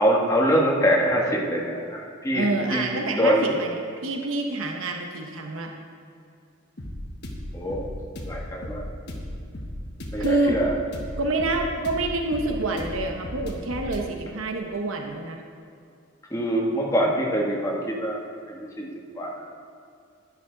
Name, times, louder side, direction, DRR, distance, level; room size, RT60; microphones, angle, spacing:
voice 1, 0.0-2.5 2.7-2.8 3.1-3.5 7.5-7.9 8.3-8.8 10.1-10.7 16.3-18.2 18.5-18.9 19.1-19.4, equal, 15° left, -2 dB, 1.4 m, -24 dB
voice 2, 2.3-5.7 10.2-10.6 11.2-15.4, right 2 dB, 85° right, 2 dB, 0.9 m, -27 dB
sound 1, 6.8-14.0, left 1 dB, 55° left, 1.3 m, -35 dB
11.0 x 10.0 x 3.9 m, 2.4 s
head